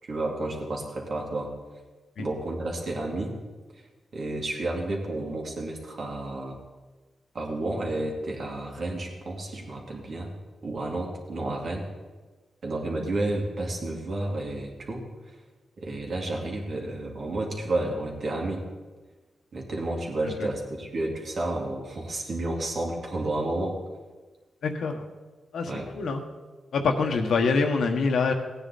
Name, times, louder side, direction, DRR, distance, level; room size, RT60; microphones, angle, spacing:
voice 1, 0.0-1.5 2.2-3.4 3.7-3.8 4.1-6.6 7.3-10.3 10.6-11.9 12.6-15.4 15.8-18.7 19.5-23.8 25.7-25.9, right 2 dB, 55° right, 0 dB, 2.6 m, -31 dB
voice 2, 24.6-25.1 25.5-25.7 25.9-26.2 26.7-28.3, left 4 dB, 75° left, 4 dB, 1.4 m, -25 dB
16.5 x 9.6 x 4.2 m, 1.3 s
wide cardioid pair, 110°, 0 cm